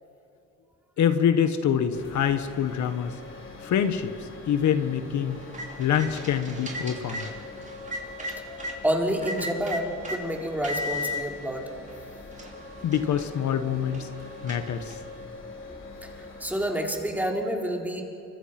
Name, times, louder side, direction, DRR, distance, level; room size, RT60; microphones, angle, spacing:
voice 1, 1.0-3.2 3.6-5.4 5.8-7.3 12.8-14.1 14.4-15.0, left 8 dB, 70° left, 9 dB, 1.4 m, -25 dB
sound 1, 1.9-16.7, left 3 dB, 40° left, 4.9 m, -44 dB
sound 2, 5.3-8.8 9.2-10.2 10.6-11.2 11.9-12.0 12.3-15.1, left 1 dB, 25° right, 5.7 m, -36 dB
voice 2, 8.2-11.6 14.7-14.8 15.7-18.0, equal, 5° right, 0 dB, 4.5 m, -29 dB
29.5 x 25.5 x 6.1 m, 2.7 s
cardioid pair, 90°, 30 cm